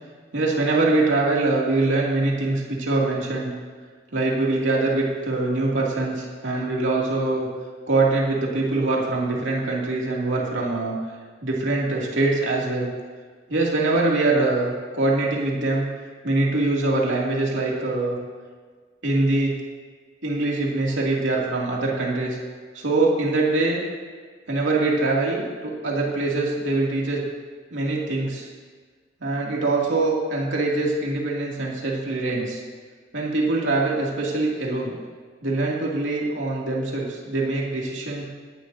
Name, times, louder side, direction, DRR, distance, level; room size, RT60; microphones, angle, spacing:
voice 1, 0.3-3.5 4.1-7.5 7.9-11.0 11.4-12.9 13.5-15.9 16.2-18.2 19.0-19.6 20.2-22.4 22.7-23.8 24.5-27.2 27.7-28.5 29.2-32.6 33.1-35.0 35.4-38.2, right 2 dB, 75° right, -3 dB, 2.5 m, -23 dB
18.5 x 11.5 x 2.7 m, 1.5 s
head